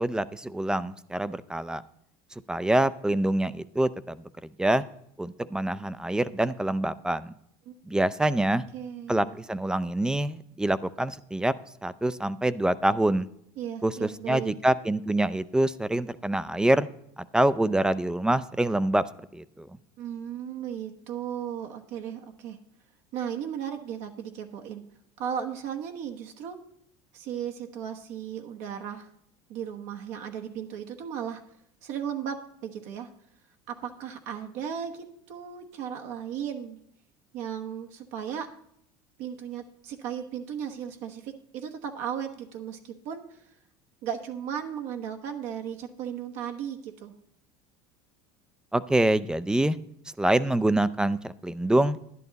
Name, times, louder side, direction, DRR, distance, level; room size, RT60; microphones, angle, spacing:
voice 1, 0.0-1.8 2.5-4.2 4.6-4.8 5.2-7.3 7.9-8.6 9.1-11.5 11.8-13.3 13.8-16.9 17.3-19.0 19.3-19.7 48.7-49.8 50.2-52.0, right 1 dB, 5° right, 16 dB, 0.4 m, -25 dB
voice 2, 8.7-9.4 13.6-14.5 20.0-22.6 23.1-24.8 25.2-26.6 27.1-29.1 29.5-31.4 31.8-33.1 33.7-36.8 37.3-38.5 39.2-43.4 44.0-47.1, right 8 dB, 65° right, 4 dB, 1.1 m, -36 dB
11.0 x 10.5 x 4.0 m, 0.71 s
supercardioid pair, 125°, 13 cm